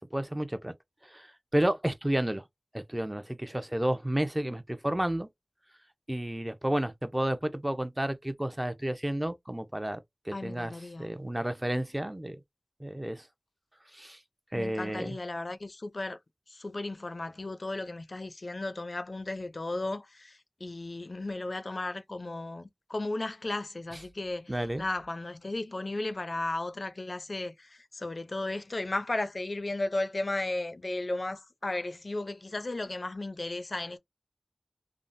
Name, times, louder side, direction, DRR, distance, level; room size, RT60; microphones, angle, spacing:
voice 1, 0.1-0.7 1.0-2.4 2.7-5.3 6.1-12.4 12.8-13.3 13.9-14.2 14.5-15.2 23.9-24.0 24.5-24.8, right 1 dB, 20° right, 0.5 m, -31 dB
voice 2, 10.3-11.1 14.5-16.2 16.6-20.0 20.6-24.5 24.8-27.5 28.0-34.0, left 2 dB, 65° left, 0.4 m, -34 dB
3.5 x 2.0 x 2.5 m
wide cardioid pair, 55°, 0 cm